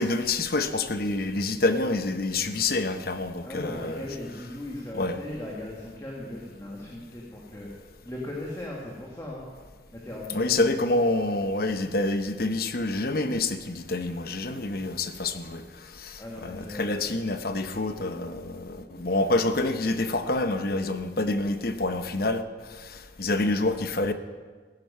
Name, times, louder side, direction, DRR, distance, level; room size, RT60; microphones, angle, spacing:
voice 1, 0.0-4.1 4.9-5.2 10.3-15.6 16.0-22.4 23.2-24.1, left 2 dB, 50° left, 9 dB, 0.8 m, -27 dB
voice 2, 3.4-7.7 8.0-9.4 9.9-10.7 16.2-17.1, left 1 dB, 15° left, -3 dB, 1.6 m, -38 dB
16.0 x 10.5 x 5.5 m, 1.5 s
head